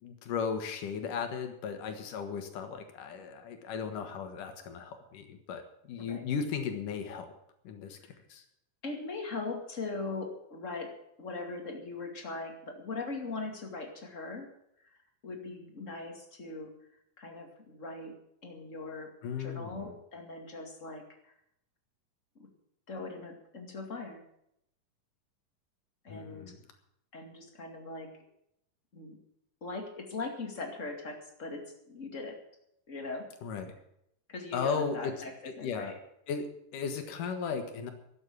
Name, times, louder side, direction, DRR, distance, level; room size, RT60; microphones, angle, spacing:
voice 1, 0.0-7.3 7.6-8.0 8.3-8.4 19.2-19.8 26.1-26.6 33.4-33.7 34.5-35.1 35.4-35.9 36.3-37.9, left 6 dB, 70° left, 6 dB, 3.1 m, -36 dB
voice 2, 8.8-14.5 14.8-16.8 17.2-18.1 18.4-21.3 22.4-22.5 22.9-24.2 26.0-26.6 27.1-28.1 28.9-29.2 29.6-32.4 32.9-33.3 34.3-36.0, left 3 dB, 25° left, 3 dB, 2.1 m, -40 dB
12.5 x 8.7 x 9.8 m, 0.76 s
omnidirectional pair, 3.9 m